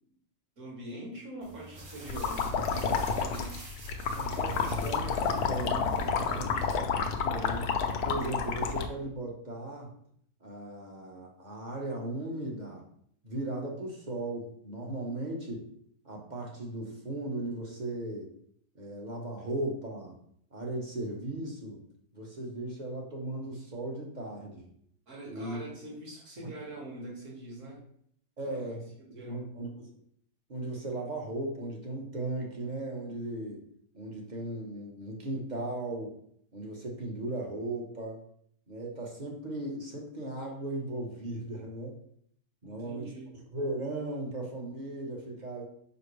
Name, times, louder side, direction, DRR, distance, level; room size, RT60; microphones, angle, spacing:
voice 1, 0.6-3.6 4.6-4.8 6.3-6.7 25.1-27.8 28.4-28.6 29.1-29.5 42.6-43.3, right 1 dB, 45° right, -2 dB, 2.1 m, -44 dB
sound 1, 1.4-6.8, right 1 dB, 80° right, 2.2 m, -48 dB
sound 2, 2.1-8.9, left 5 dB, 70° left, 1.2 m, -30 dB
voice 2, 4.1-7.7 8.0-9.9 10.4-12.9 13.2-15.7 16.0-18.3 18.7-20.1 20.5-21.8 22.1-24.7 25.3-25.6 28.4-29.9 30.5-33.6 33.9-36.1 36.5-38.2 38.7-42.0 42.6-43.1 43.5-45.6, right 2 dB, 30° right, 0 dB, 1.1 m, -37 dB
5.6 x 5.2 x 3.3 m, 0.66 s
omnidirectional pair, 1.8 m